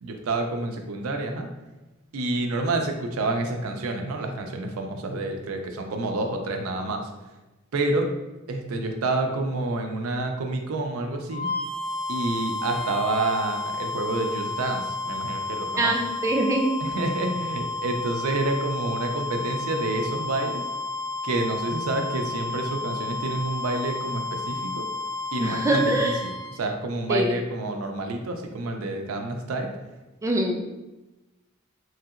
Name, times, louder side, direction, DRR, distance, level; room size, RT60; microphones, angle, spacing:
voice 1, 0.0-1.5 2.1-7.1 7.7-8.1 8.5-11.5 12.1-15.9 16.8-20.6 21.2-24.9 25.3-29.7, right 2 dB, 90° right, 4 dB, 0.5 m, -28 dB
sound 1, 11.3-26.6, left 3 dB, 50° right, 0.9 m, -31 dB
voice 2, 15.8-16.7 25.4-26.2 27.1-27.4 30.2-30.6, right 1 dB, 15° right, 1 dB, 0.3 m, -23 dB
3.1 x 2.8 x 2.4 m, 1.1 s
head